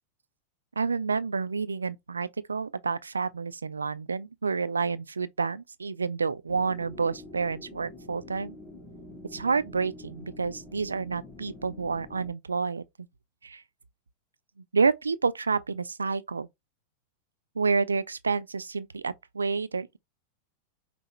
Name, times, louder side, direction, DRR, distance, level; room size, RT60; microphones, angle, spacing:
voice 1, 0.8-8.6 9.3-12.8 13.4-13.6 14.7-16.5 17.6-20.0, right 4 dB, 75° right, 0.3 m, -29 dB
sound 1, 6.5-12.3, left 1 dB, 15° left, 2.4 m, -46 dB
5.4 x 2.1 x 3.1 m
figure-of-eight pair, 90°, 0 cm